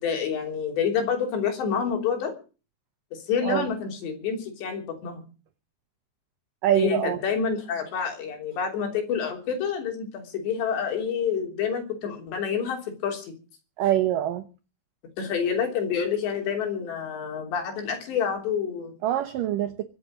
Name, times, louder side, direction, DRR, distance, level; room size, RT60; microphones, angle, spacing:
voice 1, 0.0-2.3 3.3-5.2 6.7-13.3 15.2-18.9, left 7 dB, 70° left, 3 dB, 5.5 m, -28 dB
voice 2, 6.6-7.2 13.8-14.4 19.0-19.8, right 12 dB, 90° right, 10 dB, 1.9 m, -24 dB
24.0 x 8.2 x 6.4 m, 0.36 s
omnidirectional pair, 5.2 m